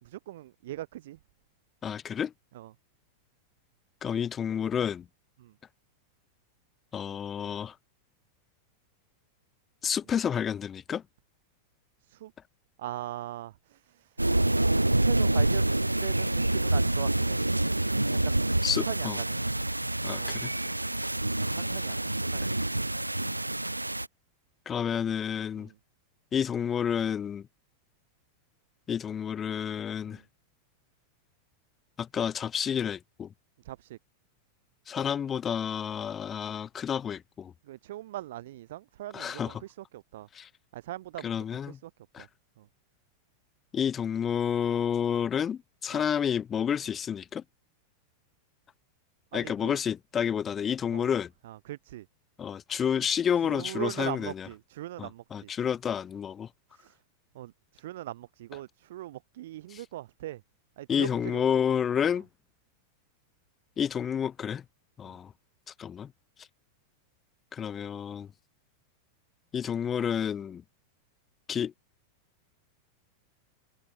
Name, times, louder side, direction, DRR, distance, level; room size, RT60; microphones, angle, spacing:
voice 1, 0.0-1.2 2.5-2.7 5.4-5.5 12.1-12.3 12.8-14.3 14.7-17.4 18.2-18.4 18.7-19.4 20.2-20.4 21.4-22.5 25.6-25.7 30.1-30.2 33.6-34.0 37.7-40.3 40.7-41.9 42.2-42.3 42.6-42.7 45.9-46.1 49.3-49.8 50.9-51.2 51.4-52.1 53.4-55.5 56.7-57.0 57.3-60.4 60.8-61.4 65.0-65.1, right 14 dB, 55° right, 1.2 m, -40 dB
voice 2, 1.8-2.3 4.0-5.1 6.9-7.7 9.8-11.0 18.6-19.2 20.0-20.5 24.7-25.7 26.3-27.5 28.9-30.2 32.0-33.3 34.9-37.5 39.1-39.6 40.3-40.5 41.2-41.8 42.1-42.3 43.7-47.4 49.3-51.3 52.4-54.5 55.0-56.5 59.7-59.8 60.9-62.3 63.8-64.6 65.0-65.3 65.8-66.1 67.5-68.3 69.5-70.6 71.5-71.7, left 8 dB, 25° left, 2.4 m, -30 dB
sound 1, 14.2-24.1, right 1 dB, 85° right, 0.8 m, -27 dB
figure-of-eight pair, 90°, 0 cm